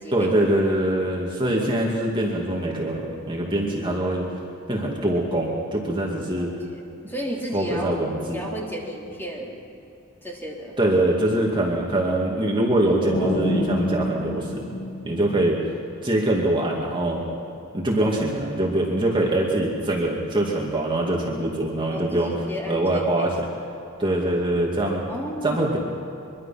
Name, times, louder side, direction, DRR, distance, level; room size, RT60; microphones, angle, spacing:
voice 1, 0.1-4.2 4.7-6.5 7.5-8.4 10.8-14.7 15.0-15.6 16.0-17.2 17.7-22.3 22.7-23.3 24.0-25.1 25.4-25.8, right 1 dB, 25° right, -2 dB, 2.4 m, -23 dB
voice 2, 6.4-8.0 8.3-9.6 10.2-10.8 21.9-23.3 23.8-23.9 25.1-25.8, equal, 10° left, -3 dB, 3.6 m, -33 dB
sound 1, 13.1-15.9, left 1 dB, 30° left, 1.9 m, -27 dB
24.0 x 23.5 x 5.9 m, 2.8 s
head